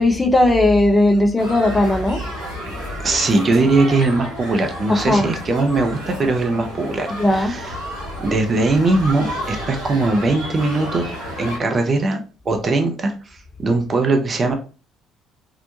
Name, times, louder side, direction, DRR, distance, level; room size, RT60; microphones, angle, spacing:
voice 1, 0.0-2.2 4.9-5.3 7.2-7.6, left 1 dB, 15° left, 0.4 m, -17 dB
sound 1, 1.4-11.6, equal, 90° left, 1.3 m, -32 dB
voice 2, 3.0-7.8 8.2-12.2 12.5-14.5, right 3 dB, 35° right, 0.5 m, -20 dB
2.8 x 2.1 x 2.5 m
figure-of-eight pair, 50°, 0 cm